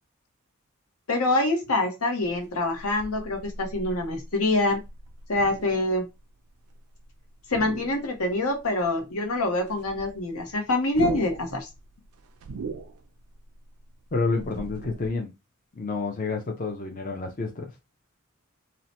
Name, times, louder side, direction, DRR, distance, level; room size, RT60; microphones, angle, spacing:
voice 1, 1.1-4.8 5.3-6.1 7.5-11.7, left 2 dB, 80° left, 0.8 m, -25 dB
sound 1, 2.3-7.1 7.4-8.7 9.0-9.1 9.3-15.1, right 4 dB, 80° right, 0.4 m, -39 dB
voice 2, 14.1-15.3 15.7-17.7, left 3 dB, 40° left, 0.5 m, -29 dB
2.8 x 2.1 x 2.8 m
head